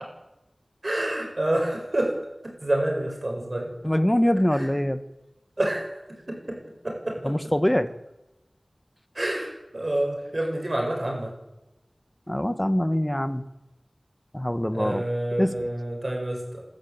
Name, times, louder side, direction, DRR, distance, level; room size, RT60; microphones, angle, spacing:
voice 1, 0.8-2.2 2.4-3.7 4.5-4.7 5.6-6.6 6.8-7.4 9.1-11.3 14.7-16.7, right 1 dB, 50° right, 1 dB, 7.4 m, -28 dB
voice 2, 3.8-5.0 7.2-7.9 12.3-13.4 14.3-15.0 15.4-15.5, equal, 15° left, 11 dB, 1.5 m, -23 dB
22.5 x 13.0 x 9.0 m, 0.95 s
wide cardioid pair, 50°, 0 cm